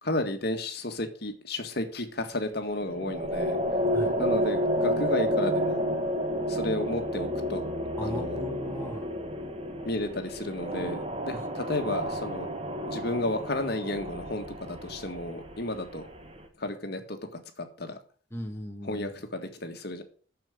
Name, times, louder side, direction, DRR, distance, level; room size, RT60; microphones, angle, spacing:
voice 1, 0.0-3.6 4.2-5.8 6.5-7.6 8.0-8.4 9.8-12.5 12.9-16.0 16.6-18.0 18.8-20.0, left 1 dB, 50° left, 6 dB, 1.8 m, -32 dB
sound 1, 2.8-16.5, equal, 30° right, 1.5 m, -31 dB
voice 2, 8.0-9.1 11.3-11.4 18.3-19.2, equal, 10° left, 3 dB, 1.7 m, -38 dB
8.9 x 7.3 x 7.9 m, 0.43 s
head